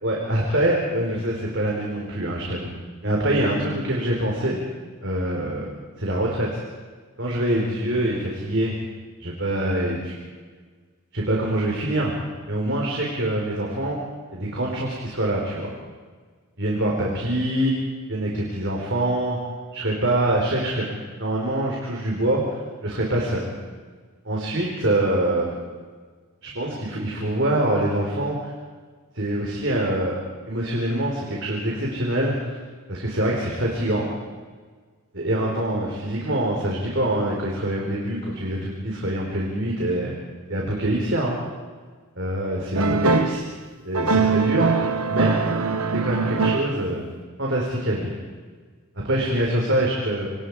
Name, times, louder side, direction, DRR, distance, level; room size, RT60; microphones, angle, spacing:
voice 1, 0.0-2.7 3.0-4.6 5.0-5.7 6.0-6.6 7.2-8.7 9.2-10.3 11.1-12.1 12.5-14.0 14.3-15.7 16.6-17.7 18.1-19.4 19.7-20.9 21.2-23.5 24.2-25.5 26.4-28.5 29.1-30.1 30.5-32.6 32.9-34.1 35.1-40.1 40.5-41.4 42.2-43.4 43.8-45.4 46.0-47.1 47.4-48.2 49.0-50.3, right 1 dB, 55° right, -2 dB, 4.5 m, -24 dB
sound 1, 42.7-43.4 43.9-47.0, right 4 dB, 90° right, 1.3 m, -22 dB
28.5 x 26.0 x 5.0 m, 1.5 s
head